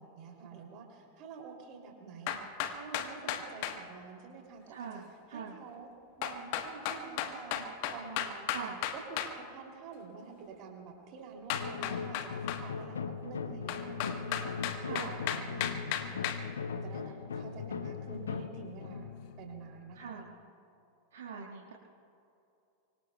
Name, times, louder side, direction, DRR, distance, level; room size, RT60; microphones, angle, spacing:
voice 1, 0.0-5.9 6.2-8.5 9.1-16.2 16.7-19.1 19.4-20.2, right 5 dB, 40° right, 1 dB, 2.8 m, -48 dB
sound 1, 2.3-3.8 6.2-9.3 11.5-12.6 13.7-16.4, left 10 dB, 45° left, 1.2 m, -34 dB
voice 2, 4.7-5.0 5.3-5.6 8.5-8.8 14.8-15.2 19.9-20.3 21.1-21.7, right 6 dB, 60° right, -2 dB, 1.6 m, -42 dB
sound 2, 11.5-20.3, left 6 dB, 70° left, 0.8 m, -39 dB
25.0 x 24.5 x 2.3 m, 2.6 s
figure-of-eight pair, 90°, 0 cm